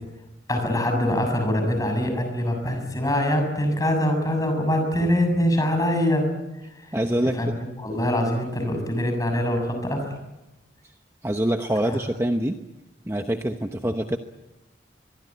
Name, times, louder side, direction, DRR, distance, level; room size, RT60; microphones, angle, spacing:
voice 1, 0.5-6.3 7.3-7.5 7.8-10.1 11.8-12.0, left 1 dB, 20° left, 4 dB, 6.8 m, -23 dB
voice 2, 6.9-7.4 7.9-8.0 11.2-12.6 13.1-14.2, right 1 dB, 15° right, 5 dB, 0.9 m, -25 dB
23.5 x 23.5 x 8.6 m, 1.0 s
head